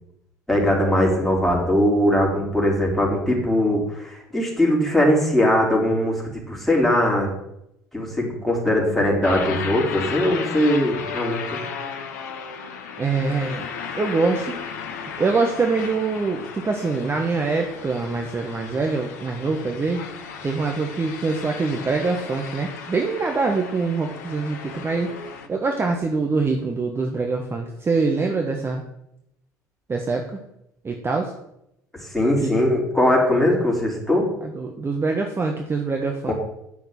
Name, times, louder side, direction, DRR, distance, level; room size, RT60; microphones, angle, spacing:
voice 1, 0.5-7.3 7.9-11.6 32.0-34.3 36.3-36.4, left 1 dB, ahead, -3 dB, 4.5 m, -20 dB
sound 1, 9.2-25.5, left 6 dB, 70° left, 1.1 m, -35 dB
voice 2, 13.0-13.7 14.0-14.6 15.2-20.1 20.4-25.1 25.5-28.8 29.9-30.3 30.8-31.3 32.4-32.5 34.4-36.3, right 4 dB, 25° right, 3 dB, 1.4 m, -24 dB
8.7 x 6.7 x 7.9 m, 0.80 s
figure-of-eight pair, 60°, 9 cm